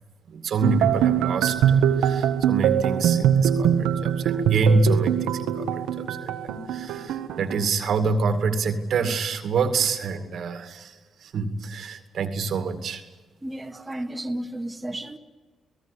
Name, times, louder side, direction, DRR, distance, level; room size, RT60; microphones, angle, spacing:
voice 1, 0.3-13.0, right 4 dB, 70° right, 2.3 m, -27 dB
sound 1, 0.6-7.7, right 9 dB, 85° right, 1.5 m, -22 dB
voice 2, 13.4-15.2, right 1 dB, 20° right, 2.0 m, -32 dB
28.0 x 18.0 x 8.5 m
supercardioid pair, 55°, 0 cm